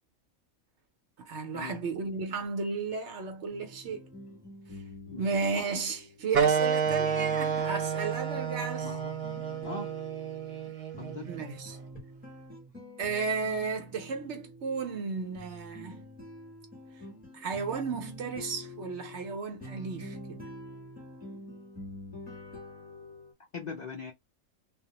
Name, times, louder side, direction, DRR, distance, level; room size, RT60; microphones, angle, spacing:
voice 1, 1.2-4.0 5.2-9.0 11.3-11.8 13.0-16.0 17.3-20.4, right 4 dB, 60° right, 1.0 m, -34 dB
sound 1, 3.5-23.3, left 1 dB, 5° right, 1.0 m, -47 dB
sound 2, 6.3-11.5, right 6 dB, 85° right, 0.4 m, -30 dB
voice 2, 8.8-9.1 9.6-9.9 11.0-11.3 23.5-24.1, left 4 dB, 80° left, 0.3 m, -40 dB
2.4 x 2.0 x 2.9 m
omnidirectional pair, 1.4 m